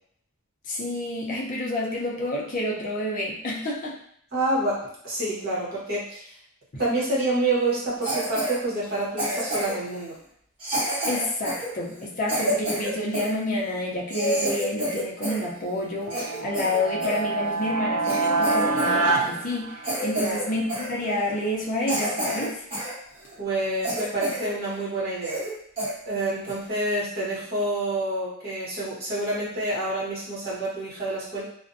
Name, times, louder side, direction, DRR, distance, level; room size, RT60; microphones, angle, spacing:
voice 1, 0.6-4.0 6.7-6.8 11.1-22.6, left 1 dB, 40° left, -3 dB, 0.5 m, -29 dB
voice 2, 4.3-6.3 6.8-10.2 20.2-20.4 23.4-25.4 26.1-31.4, right 2 dB, 45° right, -7 dB, 1.0 m, -28 dB
Cough, 8.0-8.6 9.2-9.9 10.6-13.3 13.8-13.9 14.1-15.5 15.8-17.2 17.7-17.8 18.0-19.0 19.2-19.4 19.8-20.4 20.7-20.9 21.4-21.5 21.9-22.9 23.3-23.4 23.8-24.5 24.8-24.9 25.2-25.5 25.8-25.9 26.4-26.7, right 1 dB, 25° right, 1.2 m, -29 dB
sound 1, 16.0-20.4, right 3 dB, 70° right, 0.3 m, -26 dB
2.5 x 2.1 x 2.5 m, 0.68 s
head